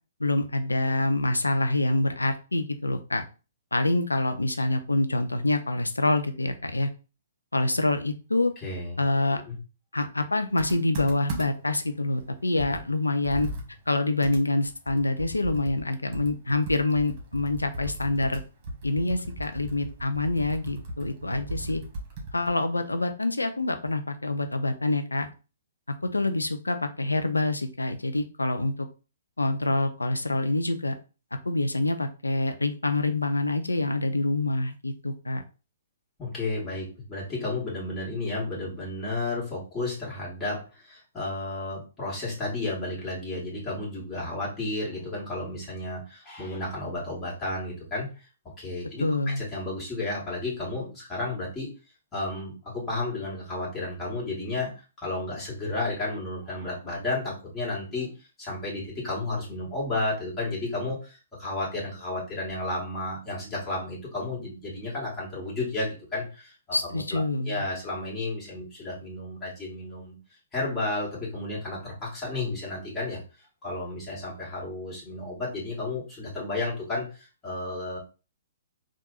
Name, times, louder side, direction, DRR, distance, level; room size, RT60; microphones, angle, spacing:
voice 1, 0.2-3.2 3.7-6.9 7.5-8.5 9.0-9.4 9.9-13.5 13.9-18.4 18.8-21.8 22.3-25.3 26.0-28.7 29.4-31.0 31.4-35.4 49.0-49.4 66.7-67.7, left 2 dB, 80° left, 7 dB, 0.6 m, -26 dB
voice 2, 8.6-9.0 9.3-9.6 36.2-48.1 48.6-51.7 52.1-58.1 58.4-70.2 70.5-73.2 73.6-78.0, left 2 dB, 15° left, -6 dB, 2.1 m, -32 dB
Computer keyboard, 10.6-11.8 12.2-12.3 12.6-15.9 16.1-22.6, right 1 dB, 35° right, 1.4 m, -38 dB
3.8 x 2.5 x 4.1 m, 0.32 s
figure-of-eight pair, 120°, 0 cm